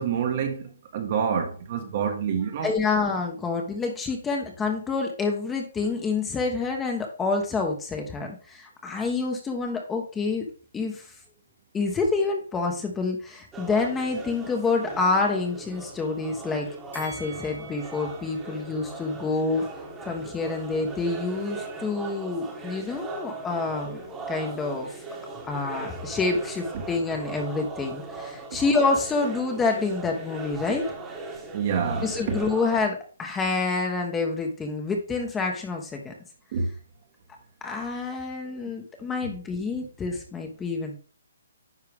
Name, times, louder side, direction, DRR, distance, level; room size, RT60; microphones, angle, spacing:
voice 1, 0.0-2.7 26.7-26.8 30.7-30.8 31.5-32.4 36.5-36.7, right 6 dB, 40° right, 1.7 m, -27 dB
voice 2, 2.6-10.5 10.7-11.1 11.7-16.7 16.9-19.6 20.0-24.0 24.3-24.9 25.5-30.8 32.0-36.1 37.6-41.0, left 4 dB, 10° left, 1.3 m, -27 dB
sound 1, 13.5-32.8, right 3 dB, 10° right, 1.6 m, -39 dB
Bell, 16.9-20.1 20.5-20.6, right 5 dB, 90° right, 2.1 m, -46 dB
10.0 x 5.6 x 3.6 m
hypercardioid pair, 150°, 0 cm